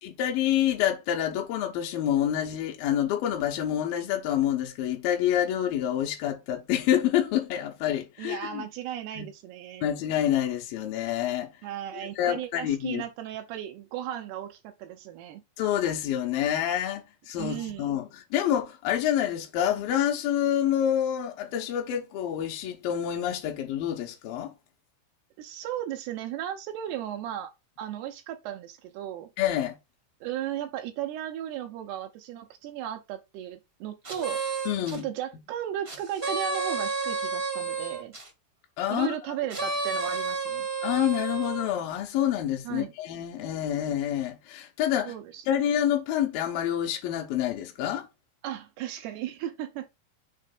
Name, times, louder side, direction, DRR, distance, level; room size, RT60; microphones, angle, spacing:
voice 1, 0.0-8.7 9.2-9.3 9.8-11.5 12.2-13.0 15.6-24.5 29.4-29.8 34.7-35.0 38.8-39.2 40.8-45.1 45.5-48.1, left 11 dB, 70° left, 2.5 m, -27 dB
voice 2, 8.2-9.9 11.6-15.4 17.4-18.0 25.4-27.5 27.8-29.3 30.2-34.4 34.9-38.2 38.9-40.7 42.6-42.9 45.1-45.4 48.4-49.9, right 11 dB, 80° right, 2.8 m, -35 dB
sound 1, 34.0-35.0 35.8-38.3 39.5-41.7, right 4 dB, 35° right, 0.9 m, -31 dB
6.6 x 3.3 x 5.1 m
omnidirectional pair, 4.7 m